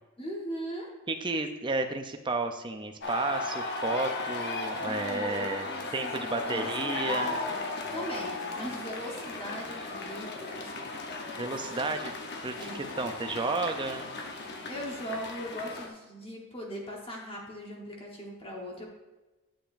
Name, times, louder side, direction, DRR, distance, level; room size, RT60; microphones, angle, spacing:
voice 1, 0.2-0.9 4.8-7.6 7.9-10.9 12.6-13.0 14.7-18.9, equal, 25° left, -2 dB, 1.2 m, -39 dB
voice 2, 1.1-7.4 11.3-12.1 12.4-12.7 13.0-14.1, right 3 dB, 20° right, 6 dB, 0.5 m, -32 dB
sound 1, 3.0-15.9, left 3 dB, 50° left, 0.8 m, -36 dB
9.1 x 6.9 x 2.6 m, 1.1 s
head